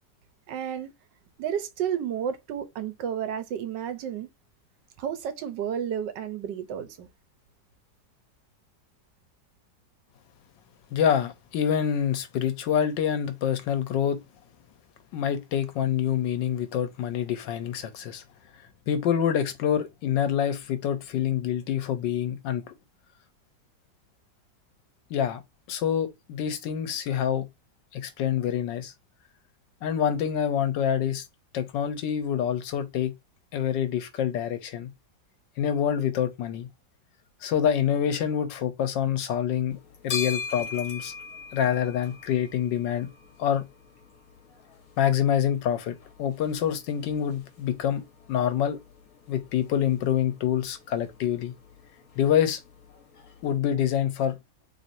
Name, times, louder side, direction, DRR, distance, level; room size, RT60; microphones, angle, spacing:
voice 1, 0.5-0.9 1.4-4.3 5.0-7.1, right 9 dB, 80° right, 1.4 m, -31 dB
voice 2, 10.9-14.2 15.1-18.2 18.9-22.6 25.1-25.4 25.7-27.5 27.9-28.9 29.8-31.2 31.5-33.1 33.5-34.9 35.6-36.7 37.4-39.8 40.0-41.1 41.5-43.1 43.4-43.6 45.0-48.0 48.3-48.8 49.3-51.5 52.2-52.6 53.4-54.4, left 9 dB, 85° left, 1.4 m, -26 dB
sound 1, 39.7-53.6, left 5 dB, 55° left, 1.5 m, -42 dB
4.2 x 3.4 x 2.6 m
omnidirectional pair, 1.9 m